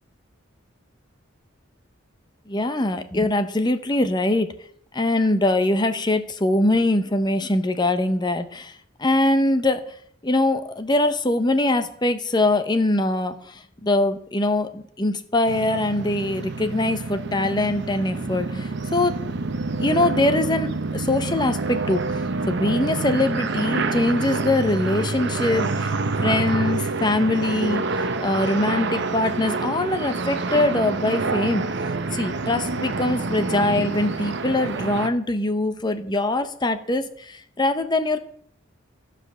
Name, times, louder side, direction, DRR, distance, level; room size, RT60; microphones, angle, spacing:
voice 1, 2.5-4.5 4.9-9.9 10.2-19.2 19.8-22.0 22.5-31.7 32.1-38.2, left 2 dB, 20° left, 8 dB, 0.7 m, -23 dB
sound 1, 15.5-35.1, right 3 dB, 55° right, 0.8 m, -27 dB
14.5 x 5.0 x 6.7 m, 0.65 s
head